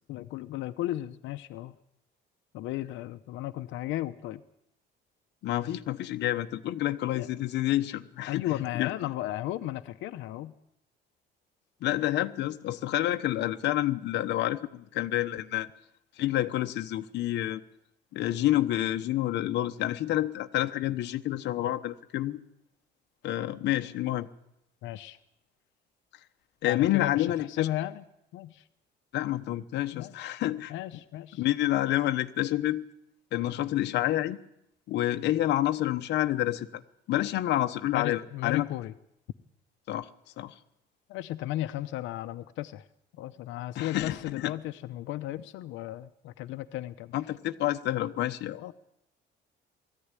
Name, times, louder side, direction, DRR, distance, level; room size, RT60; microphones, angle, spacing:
voice 1, 0.1-1.7 2.5-4.4 7.1-7.3 8.3-10.5 24.8-25.2 26.6-28.0 28.3-28.6 29.9-30.3 30.7-31.4 37.9-38.9 41.1-42.8 43.1-47.1 48.6-48.7, left 14 dB, 90° left, 8 dB, 0.8 m, -35 dB
voice 2, 5.4-8.4 8.7-8.9 11.8-15.7 16.2-17.6 18.1-22.4 23.2-24.3 26.6-27.7 29.1-30.7 31.4-32.8 33.3-34.4 34.9-36.8 37.1-38.7 39.9-40.1 40.4-40.5 43.7-44.5 47.1-48.6, left 14 dB, 65° left, 7 dB, 1.0 m, -28 dB
20.5 x 14.5 x 9.8 m, 0.79 s
cardioid pair, 170°, 19 cm